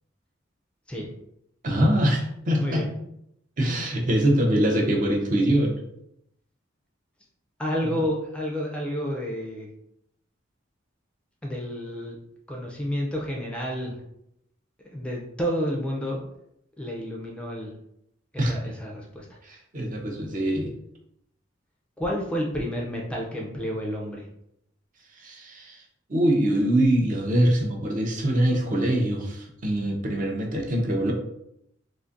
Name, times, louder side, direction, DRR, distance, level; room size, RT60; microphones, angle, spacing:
voice 1, 1.6-2.9 3.6-5.8 7.9-8.0 18.4-18.7 19.4-20.7 25.2-25.8 26.1-31.1, right 1 dB, 40° right, 0 dB, 0.6 m, -23 dB
voice 2, 7.6-9.7 11.4-12.2 12.5-14.0 14.9-16.2 16.8-17.7 18.3-19.3 22.0-24.3, equal, 5° left, -2 dB, 0.4 m, -30 dB
3.8 x 2.5 x 2.5 m, 0.78 s
head